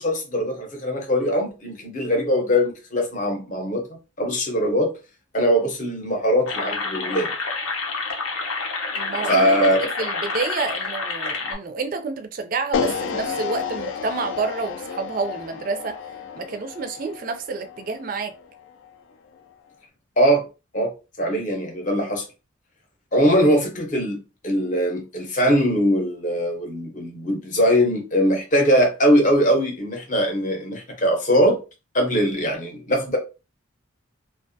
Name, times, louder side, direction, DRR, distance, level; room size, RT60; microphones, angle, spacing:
voice 1, 0.0-3.9 4.2-4.9 5.3-7.3 9.3-9.9 20.2-20.5 20.7-20.9 21.2-22.2 23.1-31.6 31.9-33.2, equal, 35° left, 0.7 m, -21 dB
sound 1, 6.5-11.5, left 4 dB, 85° left, 0.7 m, -28 dB
voice 2, 8.9-16.0 16.4-18.3, right 4 dB, 40° right, 0.3 m, -29 dB
sound 2, 12.7-18.9, left 6 dB, 65° left, 0.3 m, -31 dB
2.4 x 2.2 x 2.6 m
head